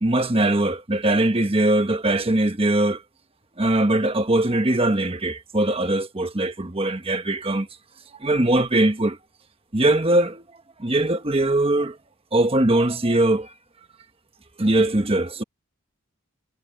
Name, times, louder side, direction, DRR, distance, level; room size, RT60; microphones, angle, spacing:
voice 1, 0.0-3.0 3.6-7.7 8.2-9.2 9.7-10.4 10.8-12.0 12.3-13.5 14.6-15.4, right 1 dB, 25° right, 1.2 m, -21 dB
head